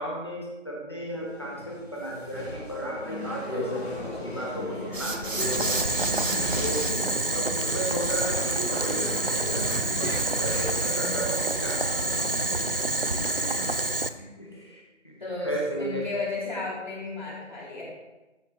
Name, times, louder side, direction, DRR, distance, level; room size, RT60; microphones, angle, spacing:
voice 1, 0.0-5.3 6.6-6.8 7.3-11.8 12.1-12.3 14.4-16.0, right 1 dB, 20° left, -3 dB, 1.2 m, -35 dB
sound 1, 1.0-13.8, left 1 dB, 55° left, 3.3 m, -37 dB
voice 2, 4.7-5.1 6.2-7.2 13.0-13.3 14.0-14.4 15.2-15.5 15.8-17.8, left 3 dB, 35° left, -7 dB, 3.6 m, -35 dB
sound 2, 4.9-6.9 9.6-10.9, right 2 dB, 90° right, 1.3 m, -33 dB
Boiling, 5.4-14.1, right 2 dB, 50° right, 0.4 m, -27 dB
14.0 x 6.5 x 3.2 m, 1.1 s
figure-of-eight pair, 170°, 38 cm